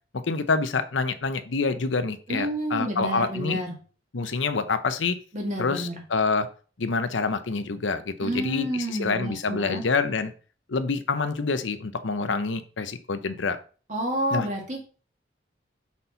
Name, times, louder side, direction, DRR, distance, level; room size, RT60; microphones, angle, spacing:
voice 1, 0.3-3.6 4.1-5.2 5.6-6.5 6.8-10.3 10.7-13.6 14.3-14.5, left 4 dB, 90° left, 10 dB, 0.8 m, -27 dB
voice 2, 2.3-3.7 5.3-6.0 8.2-9.8 13.9-14.8, right 1 dB, 40° right, 1 dB, 1.9 m, -29 dB
5.9 x 4.2 x 5.5 m, 0.39 s
head